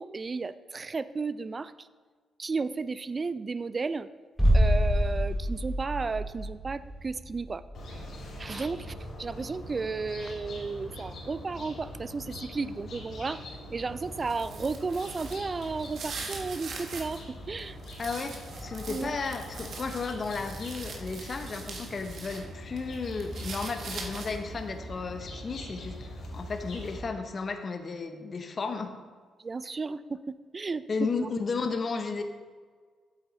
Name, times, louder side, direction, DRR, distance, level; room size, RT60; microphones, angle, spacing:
voice 1, 0.0-1.7 2.4-4.1 4.5-7.6 8.4-13.4 13.7-17.2 17.5-17.8 18.9-19.2 29.4-30.8 31.2-31.3, right 4 dB, 35° right, 15 dB, 0.3 m, -33 dB
sound 1, 4.4-10.1 10.4-10.5, equal, ahead, 2.2 m, -28 dB
sound 2, 7.7-27.0, left 1 dB, 65° left, 2.6 m, -42 dB
sound 3, 14.0-17.2 17.6-22.4 22.8-24.5, right 4 dB, 65° right, 1.5 m, -42 dB
voice 2, 18.0-28.9 30.9-32.2, left 4 dB, 40° left, 6 dB, 0.8 m, -34 dB
8.1 x 8.0 x 4.0 m, 1.5 s
cardioid pair, 85°, 0 cm